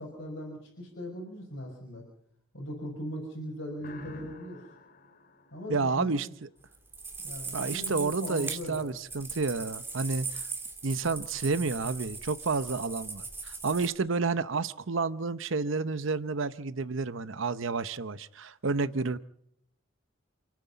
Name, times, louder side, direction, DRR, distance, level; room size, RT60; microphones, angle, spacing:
voice 1, 0.0-2.0 2.5-4.6 5.5-6.2 7.2-8.9, equal, 60° left, -2 dB, 5.6 m, -39 dB
sound 1, 3.8-6.5, left 1 dB, 45° left, 2.5 m, -49 dB
voice 2, 5.7-6.3 7.5-10.4 10.8-19.2, right 4 dB, 70° right, 14 dB, 0.8 m, -30 dB
sound 2, 6.7-13.9, right 4 dB, 10° right, 2.6 m, -39 dB
28.5 x 9.6 x 9.5 m, 0.72 s
head